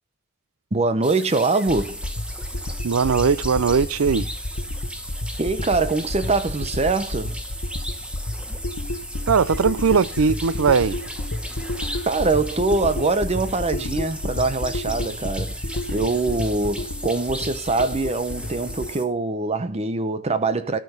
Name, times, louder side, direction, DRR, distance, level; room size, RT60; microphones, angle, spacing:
voice 1, 0.7-2.0 5.4-7.4 12.1-15.6 15.9-20.8, right 3 dB, 30° right, 0.7 m, -23 dB
sound 1, 1.0-19.0, equal, 5° right, 1.0 m, -36 dB
sound 2, 1.7-18.9, left 1 dB, 70° left, 1.2 m, -31 dB
voice 2, 2.8-4.3 9.3-11.0, right 5 dB, 75° right, 0.5 m, -19 dB
13.0 x 5.1 x 5.4 m
head